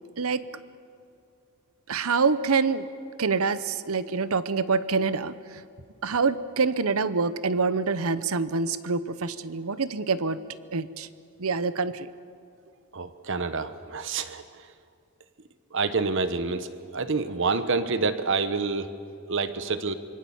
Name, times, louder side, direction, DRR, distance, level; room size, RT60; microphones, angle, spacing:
voice 1, 1.9-2.9 3.2-5.6 6.0-10.4 10.7-11.1 11.4-12.1, right 4 dB, 80° right, 15 dB, 0.9 m, -26 dB
voice 2, 12.9-14.4 15.7-16.7 16.9-18.9 19.3-19.9, right 4 dB, 60° right, 11 dB, 1.2 m, -27 dB
26.0 x 23.5 x 7.2 m, 2.4 s
head